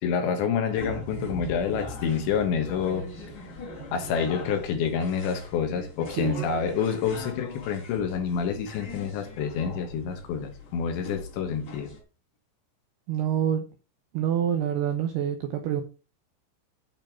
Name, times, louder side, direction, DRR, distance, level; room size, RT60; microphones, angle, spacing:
voice 1, 0.0-3.1 3.9-11.9, left 7 dB, 70° left, 3.4 m, -28 dB
sound 1, 0.7-12.0, left 1 dB, 40° left, 4.4 m, -41 dB
voice 2, 6.2-6.5 13.1-13.6 14.1-15.8, right 9 dB, 80° right, 2.3 m, -26 dB
8.9 x 5.3 x 6.1 m
omnidirectional pair, 5.9 m